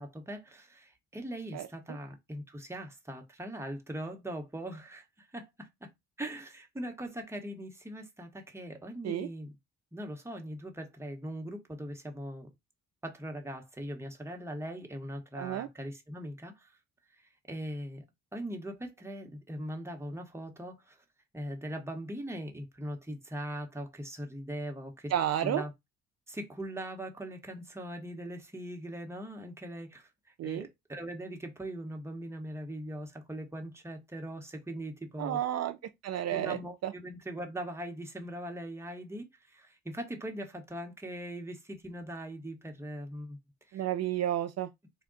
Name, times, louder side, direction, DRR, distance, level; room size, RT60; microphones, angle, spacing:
voice 1, 0.0-5.9 6.2-9.6 9.9-12.5 13.0-16.8 17.1-18.0 18.3-21.0 21.3-25.1 25.4-25.7 26.3-30.1 30.4-35.4 36.3-43.4 43.7-43.8, right 1 dB, 10° right, 1.0 m, -40 dB
voice 2, 15.4-15.7 25.1-25.6 30.4-30.7 35.2-35.8 36.0-36.9 43.7-44.7, right 11 dB, 55° right, 0.5 m, -31 dB
3.5 x 2.2 x 3.8 m
cardioid pair, 90°, 30 cm